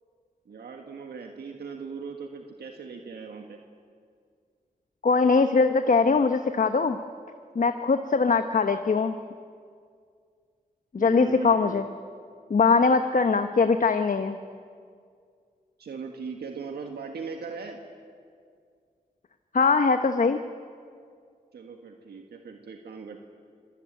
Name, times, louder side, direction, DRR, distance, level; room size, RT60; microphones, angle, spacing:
voice 1, 0.5-3.6 11.0-11.8 15.8-17.8 21.5-23.2, right 5 dB, 90° right, 3 dB, 1.6 m, -39 dB
voice 2, 5.0-7.0 7.5-9.2 10.9-11.8 12.5-14.4 19.5-20.4, left 4 dB, 55° left, 8 dB, 1.1 m, -21 dB
25.5 x 19.0 x 9.2 m, 2.2 s
cardioid pair, 55°, 16 cm